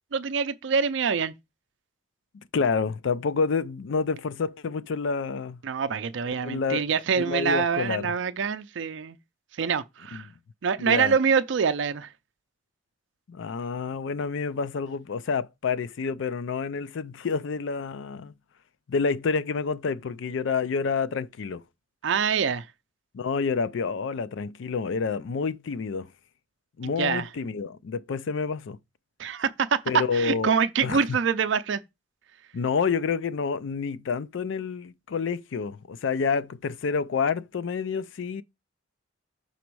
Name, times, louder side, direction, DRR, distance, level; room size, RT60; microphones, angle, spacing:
voice 1, 0.1-1.3 5.6-9.2 9.6-10.3 10.6-12.1 22.0-22.7 26.8-27.3 29.2-31.8, right 6 dB, 70° right, 0.4 m, -25 dB
voice 2, 2.5-5.6 6.4-6.8 7.1-8.1 10.1-10.2 10.8-11.1 13.3-18.3 18.9-21.6 23.1-26.1 26.8-28.8 29.9-30.5 30.8-31.0 32.5-38.4, left 5 dB, 70° left, 0.4 m, -28 dB
6.0 x 4.2 x 4.6 m
head